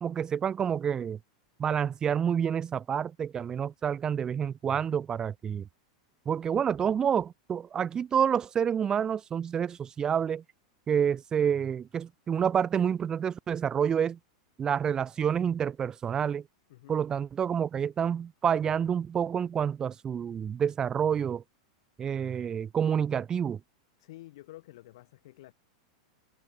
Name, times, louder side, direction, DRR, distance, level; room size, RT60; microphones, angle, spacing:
voice 1, 0.0-1.2 1.6-5.6 6.3-10.4 10.9-14.2 14.6-16.4 16.9-21.4 22.0-23.6, right 8 dB, 25° right, 0.5 m, -28 dB
voice 2, 16.7-17.0 24.0-25.5, left 17 dB, 65° left, 1.7 m, -50 dB
hypercardioid pair, 110°, 3 cm